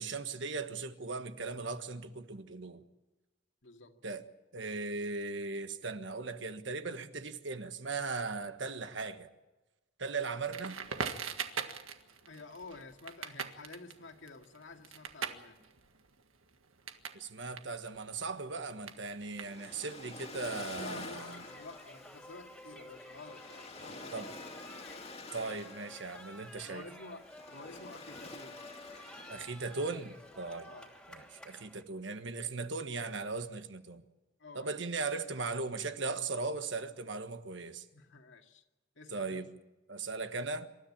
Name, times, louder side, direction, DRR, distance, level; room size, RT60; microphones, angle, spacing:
voice 1, 0.0-2.8 4.0-4.2 4.5-9.3 10.0-10.8 17.1-21.4 24.1-24.3 25.3-26.8 29.3-30.7 31.1-34.0 34.5-37.9 39.1-39.5 39.9-40.7, right 3 dB, 65° right, 1.4 m, -38 dB
voice 2, 3.6-3.9 12.3-15.6 20.8-24.2 26.7-28.6 30.7-30.9 34.4-34.8 37.9-38.6 39.0-39.5, left 3 dB, 65° left, 2.1 m, -50 dB
Crackle, 10.5-17.2 17.5-19.9, right 6 dB, 85° right, 1.7 m, -41 dB
Waves surf, 18.9-31.3, left 3 dB, 30° left, 2.3 m, -49 dB
sound 1, 21.1-31.8, left 1 dB, 5° left, 2.8 m, -52 dB
27.0 x 13.5 x 8.7 m
head